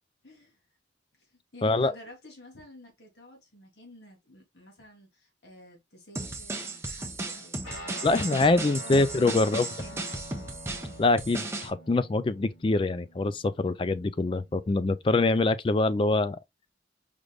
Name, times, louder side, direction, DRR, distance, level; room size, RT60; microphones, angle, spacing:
voice 1, 0.2-0.6 1.1-8.2 8.5-10.3, left 1 dB, 70° left, 1.8 m, -50 dB
voice 2, 1.6-1.9 8.0-9.7 11.0-16.4, left 2 dB, 30° left, 0.3 m, -24 dB
sound 1, 6.1-11.7, right 2 dB, 15° right, 0.7 m, -35 dB
Guitar, 7.6-15.3, equal, 90° left, 3.2 m, -46 dB
5.0 x 3.3 x 2.3 m
head